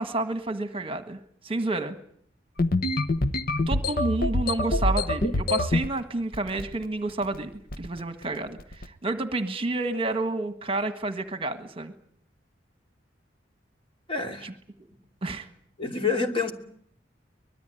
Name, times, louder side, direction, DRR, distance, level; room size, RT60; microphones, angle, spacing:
voice 1, 0.0-2.0 3.7-7.5 7.8-11.9 14.4-14.5 14.8-14.9 15.2-15.5, right 2 dB, 30° right, 9 dB, 1.5 m, -30 dB
sound 1, 2.6-5.9 6.3-6.8 7.1-7.4 7.7-8.0 8.6-8.9, left 2 dB, 55° left, 1.1 m, -25 dB
voice 2, 14.1-14.5 15.8-16.5, left 4 dB, 30° left, 3 dB, 2.9 m, -27 dB
24.0 x 21.0 x 9.1 m, 0.66 s
head